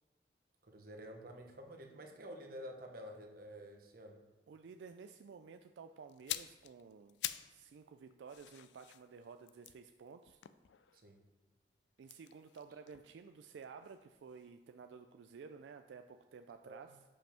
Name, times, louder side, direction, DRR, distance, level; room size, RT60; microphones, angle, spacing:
voice 1, 0.6-4.2 10.9-11.2 16.6-16.8, equal, 55° right, 3 dB, 1.0 m, -50 dB
voice 2, 4.5-10.4 12.0-17.0, right 5 dB, 90° right, 7 dB, 0.3 m, -53 dB
sound 1, 6.1-7.6 7.9-11.2 12.0-14.0 14.3-14.5, left 14 dB, 80° left, 0.3 m, -46 dB
5.4 x 5.3 x 5.7 m, 1.2 s
head